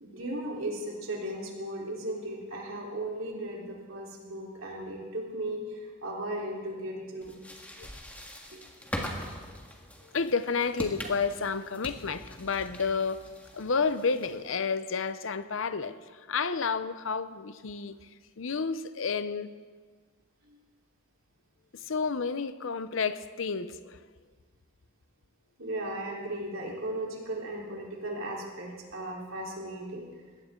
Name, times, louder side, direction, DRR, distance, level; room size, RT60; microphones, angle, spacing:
voice 1, 0.0-7.4 8.5-8.6 20.5-20.6 25.6-30.1, right 1 dB, 75° right, -2 dB, 3.9 m, -36 dB
sound 1, 7.2-14.5, equal, 10° left, 1.7 m, -42 dB
voice 2, 10.0-18.1 18.4-19.5 21.7-24.0, left 5 dB, 70° left, 13 dB, 0.7 m, -31 dB
21.0 x 16.5 x 3.8 m, 1.5 s
head